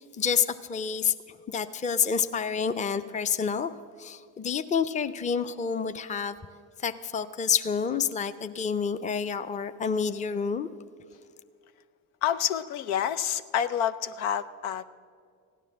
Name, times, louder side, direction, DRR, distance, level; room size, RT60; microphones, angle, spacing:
voice 1, 0.2-1.1 1.5-3.7 4.0-6.4 6.8-10.7, left 6 dB, 20° left, 10 dB, 0.6 m, -28 dB
voice 2, 12.2-14.9, left 9 dB, 90° left, 12 dB, 0.6 m, -28 dB
15.5 x 10.0 x 7.4 m, 2.2 s
hypercardioid pair, 65°, 41 cm